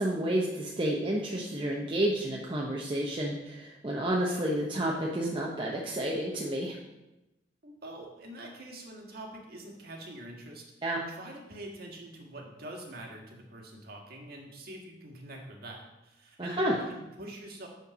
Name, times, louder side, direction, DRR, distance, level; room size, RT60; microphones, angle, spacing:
voice 1, 0.0-6.8 10.8-11.0 16.4-16.8, right 1 dB, 25° right, -3 dB, 0.9 m, -30 dB
voice 2, 7.6-10.6 11.1-17.7, right 1 dB, 60° right, 0 dB, 1.7 m, -45 dB
8.5 x 4.5 x 6.0 m, 0.98 s
head